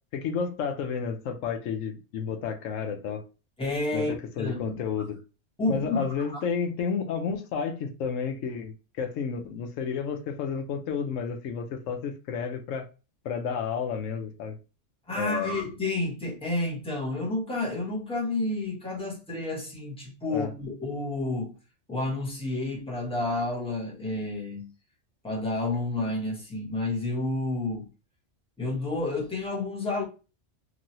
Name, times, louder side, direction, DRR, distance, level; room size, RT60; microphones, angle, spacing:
voice 1, 0.1-3.2 3.9-5.2 5.7-12.9 13.2-14.6 15.1-15.5 20.3-20.5, left 6 dB, 85° left, 1.0 m, -31 dB
voice 2, 3.6-4.8 5.6-6.4 15.1-21.6 21.9-24.7 25.2-27.9 28.6-30.1, left 2 dB, 5° left, 0.9 m, -30 dB
3.0 x 2.6 x 2.6 m
omnidirectional pair, 1.3 m